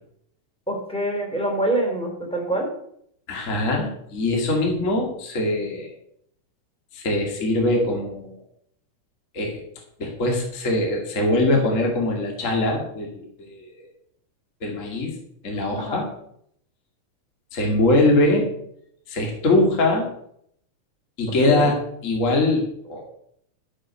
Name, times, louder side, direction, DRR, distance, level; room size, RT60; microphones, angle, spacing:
voice 1, 0.7-2.7 15.8-16.0 21.4-21.7, right 1 dB, ahead, 0 dB, 3.2 m, -25 dB
voice 2, 3.3-5.9 6.9-8.3 9.3-9.6 10.0-13.9 14.6-15.2 15.4-16.1 17.5-18.5 19.1-20.1 21.2-23.0, left 2 dB, 25° left, 1 dB, 2.5 m, -22 dB
13.5 x 6.6 x 6.5 m, 0.69 s
omnidirectional pair, 3.4 m